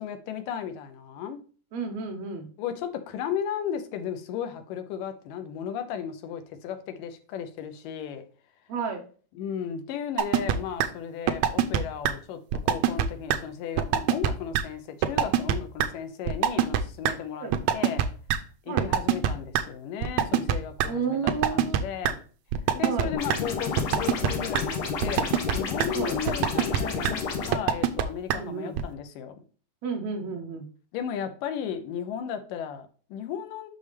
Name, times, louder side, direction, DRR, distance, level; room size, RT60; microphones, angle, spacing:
voice 1, 0.0-1.4 2.6-8.3 9.4-17.5 17.7-18.0 18.7-22.2 22.7-25.2 25.5-29.4 30.9-33.7, left 8 dB, 75° left, 2.4 m, -35 dB
voice 2, 1.7-2.5 8.7-9.0 17.4-17.5 18.7-18.9 20.9-21.8 22.8-23.1 25.9-26.2 28.3-28.8 29.8-30.7, right 5 dB, 65° right, 1.8 m, -32 dB
sound 1, 10.2-10.6 10.8-10.9 11.3-11.8 12.0-12.1 12.5-13.1 13.3-13.4 13.8-14.3 14.5-14.6 15.0-15.5 15.8-15.9 16.3-16.8 17.1-17.2 17.5-18.0 18.3-18.4 18.8-19.6 20.0-20.9 21.3-21.8 22.0-22.1 22.5-23.0 23.3-23.4 23.8-24.3 24.5-24.6 25.0-25.5 25.8-25.9 26.3-26.8 27.0-27.1 27.5-28.0 28.3-28.4 28.8-28.9, right 11 dB, 85° right, 1.6 m, -22 dB
sound 2, 23.1-27.5, left 5 dB, 60° left, 2.1 m, -31 dB
6.5 x 5.9 x 3.4 m
omnidirectional pair, 4.0 m